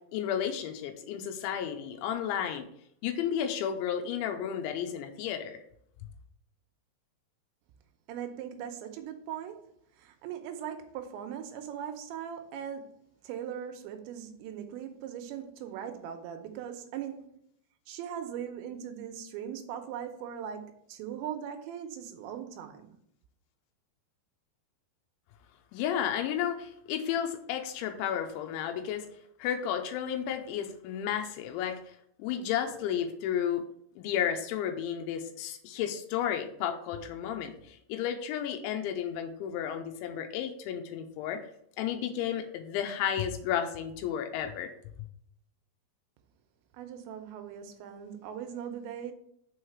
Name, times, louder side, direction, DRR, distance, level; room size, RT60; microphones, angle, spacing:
voice 1, 0.1-2.7 3.0-5.6 25.7-29.1 29.4-33.6 34.0-41.4 41.8-44.7, left 9 dB, 85° left, 3.0 m, -32 dB
voice 2, 8.1-9.7 10.0-17.3 17.9-23.0 46.7-49.1, right 9 dB, 85° right, 3.0 m, -40 dB
6.4 x 4.8 x 4.6 m
omnidirectional pair, 5.2 m